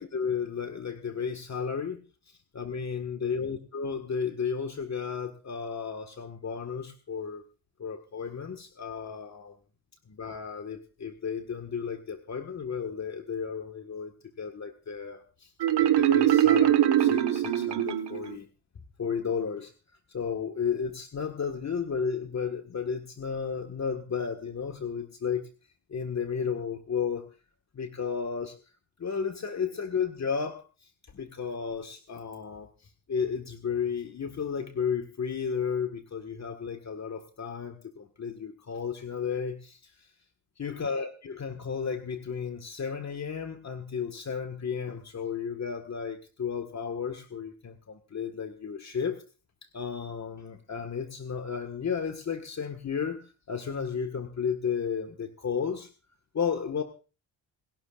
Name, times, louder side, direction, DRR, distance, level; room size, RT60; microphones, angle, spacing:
voice 1, 0.0-2.0 2.3-7.4 7.8-9.6 10.1-15.5 15.8-18.5 19.0-19.7 20.1-25.5 25.9-27.3 27.7-28.6 29.0-40.1 40.6-49.2 49.7-55.9 56.3-56.8, left 6 dB, 40° left, 6 dB, 1.7 m, -33 dB
Marimba xylophone, 15.6-18.4, right 12 dB, 70° right, 1.7 m, -22 dB
27.5 x 12.0 x 2.5 m, 0.34 s
cardioid pair, 95°, 43 cm